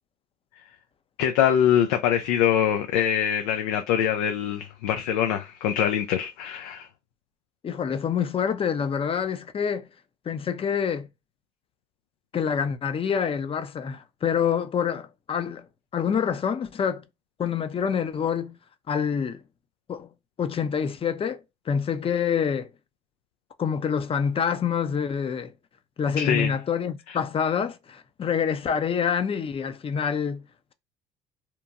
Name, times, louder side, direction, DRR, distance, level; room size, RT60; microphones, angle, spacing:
voice 1, 1.2-6.9 26.2-26.5 27.1-27.2, left 9 dB, 80° left, 0.4 m, -23 dB
voice 2, 7.6-9.9 10.3-11.1 12.3-15.7 15.9-17.0 17.4-18.6 18.9-19.4 19.9-20.1 20.4-21.4 21.7-22.7 23.6-25.5 26.0-30.4, left 7 dB, 30° left, 0.5 m, -26 dB
2.9 x 2.1 x 2.4 m
hypercardioid pair, 65°, 18 cm